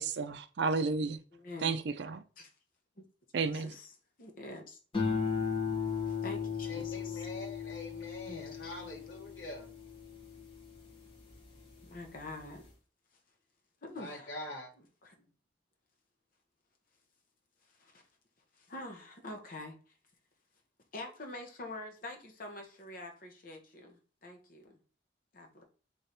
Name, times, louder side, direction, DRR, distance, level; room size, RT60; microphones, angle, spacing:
voice 1, 0.0-1.2 1.6-2.2 3.3-3.7, right 4 dB, 70° right, 0.4 m, -32 dB
voice 2, 1.3-1.8 2.4-2.5 3.0-3.1 3.3-3.9 4.2-4.8 6.1-7.3 8.3-8.7 11.8-12.7 13.8-14.4 15.0-15.2 17.8-18.0 18.6-19.8 20.9-24.8 25.3-25.6, left 2 dB, 50° left, 1.2 m, -46 dB
sound 1, 4.9-11.5 11.9-12.4, left 6 dB, 30° left, 1.5 m, -36 dB
voice 3, 6.6-9.7 14.0-14.7, left 1 dB, 80° left, 1.5 m, -44 dB
3.4 x 3.3 x 4.2 m
head